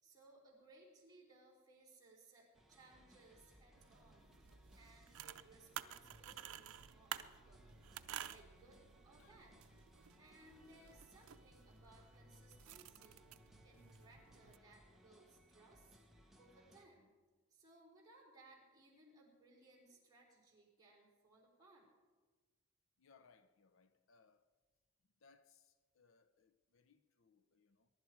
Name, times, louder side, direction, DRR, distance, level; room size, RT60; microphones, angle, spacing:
voice 1, 0.0-4.4 4.7-7.7 8.3-9.5 10.2-13.3 13.6-16.0 16.3-17.1 17.5-21.9, right 2 dB, 20° right, 4.6 m, -65 dB
sound 1, 2.5-16.9, equal, ahead, 1.2 m, -66 dB
sound 2, 3.8-14.6, right 10 dB, 90° right, 0.6 m, -53 dB
voice 2, 23.0-24.5 25.2-27.9, left 5 dB, 65° left, 0.7 m, -70 dB
22.5 x 11.5 x 4.7 m
head